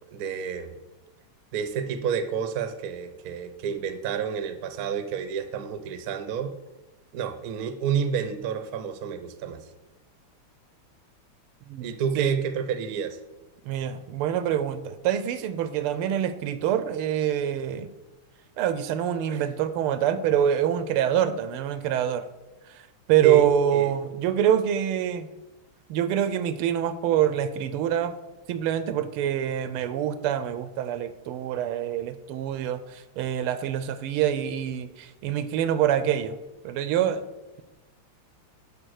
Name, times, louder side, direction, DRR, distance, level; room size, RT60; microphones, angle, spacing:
voice 1, 0.1-0.7 1.5-6.5 7.1-9.6 11.8-13.2 19.3-19.5 23.2-23.9, right 7 dB, 65° right, 10 dB, 0.9 m, -30 dB
voice 2, 11.7-12.3 13.7-17.9 18.6-22.2 23.1-25.3 25.9-28.1 28.5-32.8 33.2-36.4 36.6-37.2, right 10 dB, 85° right, 12 dB, 1.5 m, -25 dB
10.0 x 3.8 x 6.3 m, 1.0 s
omnidirectional pair, 2.4 m